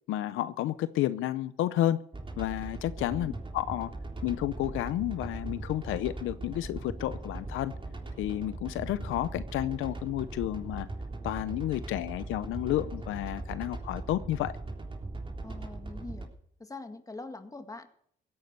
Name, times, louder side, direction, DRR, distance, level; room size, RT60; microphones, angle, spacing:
voice 1, 0.1-2.0 2.4-3.9 4.2-7.7 8.2-10.9 11.2-14.5, left 14 dB, 90° left, 14 dB, 0.7 m, -31 dB
sound 1, 2.1-16.2, right 2 dB, 25° right, 3.7 m, -39 dB
voice 2, 15.4-16.3 16.6-17.9, left 3 dB, 15° left, 7 dB, 1.8 m, -43 dB
16.5 x 9.7 x 6.6 m, 0.66 s
cardioid pair, 90°, 20 cm